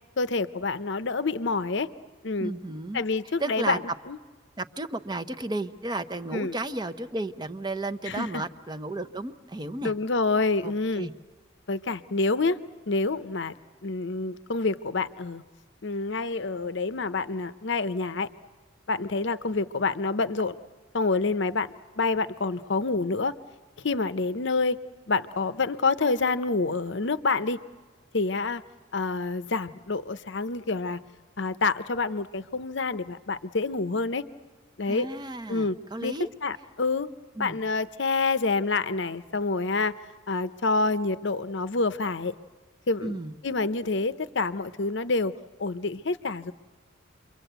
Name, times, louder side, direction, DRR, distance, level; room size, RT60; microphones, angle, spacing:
voice 1, 0.2-1.9 2.2-2.5 2.9-3.8 4.1-4.2 6.3-6.6 8.0-8.4 9.8-11.1 11.7-12.6 12.9-13.5 13.8-15.4 15.8-18.3 18.9-20.6 20.9-21.7 22.0-23.3 23.8-24.8 25.1-27.6 28.1-28.6 28.9-31.0 31.4-34.2 34.8-35.1 35.5-37.1 37.4-40.0 40.3-42.3 42.9-45.3 45.6-46.5, left 3 dB, 60° left, 13 dB, 0.8 m, -27 dB
voice 2, 2.4-3.0 3.4-3.8 4.6-9.9 10.6-11.1 34.9-36.3 37.4-37.6 43.0-43.3, right 2 dB, 20° right, 10 dB, 0.8 m, -33 dB
29.5 x 23.0 x 8.1 m, 1.5 s
head